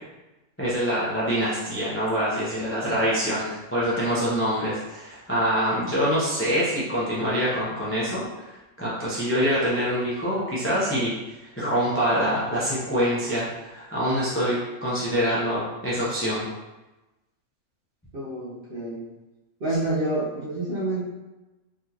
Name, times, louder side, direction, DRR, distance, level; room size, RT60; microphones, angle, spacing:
voice 1, 0.6-8.5 8.8-11.1 11.6-16.5, equal, 20° left, -8 dB, 0.3 m, -25 dB
voice 2, 18.1-19.1 19.6-21.0, right 2 dB, 55° right, -7 dB, 0.7 m, -28 dB
3.5 x 2.4 x 2.8 m, 1.1 s
omnidirectional pair, 1.5 m